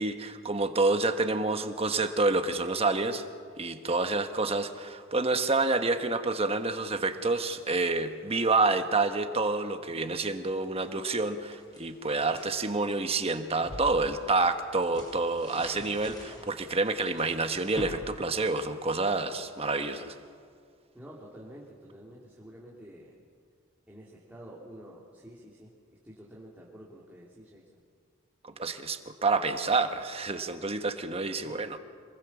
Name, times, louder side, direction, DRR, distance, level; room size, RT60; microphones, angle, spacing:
voice 1, 0.0-3.2 3.6-20.1 28.4-31.8, right 3 dB, 30° right, 7 dB, 1.3 m, -28 dB
sound 1, 10.6-12.6 13.1-19.1, equal, 20° left, 5.2 m, -46 dB
voice 2, 20.9-23.1 23.9-25.7 26.0-27.8 28.4-28.9 31.4-31.6, equal, 5° right, -5 dB, 2.7 m, -49 dB
27.0 x 20.5 x 7.2 m, 2.1 s
head